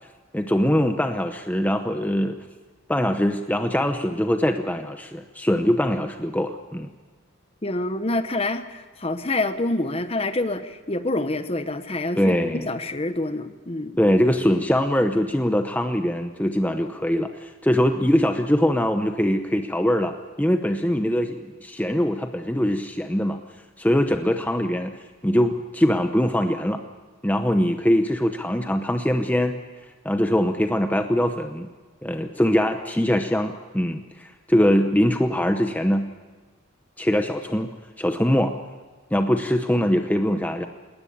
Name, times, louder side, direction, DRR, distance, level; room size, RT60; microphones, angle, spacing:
voice 1, 0.3-2.4 2.9-6.9 12.2-12.7 14.0-23.4 23.8-24.9 25.2-26.8 27.2-29.6 30.0-31.7 32.0-36.1 37.0-37.7 38.0-38.5 39.1-40.7, equal, 10° left, 6 dB, 0.8 m, -22 dB
voice 2, 7.6-13.9, left 2 dB, 30° left, 10 dB, 1.0 m, -27 dB
20.0 x 19.0 x 8.6 m, 1.3 s
head